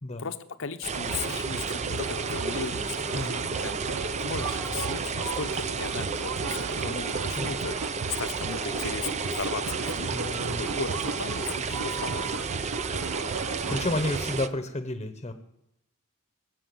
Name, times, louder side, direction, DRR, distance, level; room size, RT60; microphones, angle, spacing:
voice 1, 0.2-3.8 4.2-7.8 8.2-10.1 10.6-12.4, left 5 dB, 60° left, 10 dB, 0.9 m, -36 dB
sound 1, 0.8-14.5, right 5 dB, 30° right, 0.5 m, -32 dB
sound 2, 0.9-14.3, right 4 dB, 75° right, 0.7 m, -36 dB
sound 3, 1.9-14.4, equal, 5° right, 1.0 m, -52 dB
voice 2, 3.1-3.5 7.4-7.5 10.1-10.7 13.3-15.3, left 2 dB, 25° left, 8 dB, 1.0 m, -32 dB
21.0 x 7.6 x 7.8 m, 0.85 s
head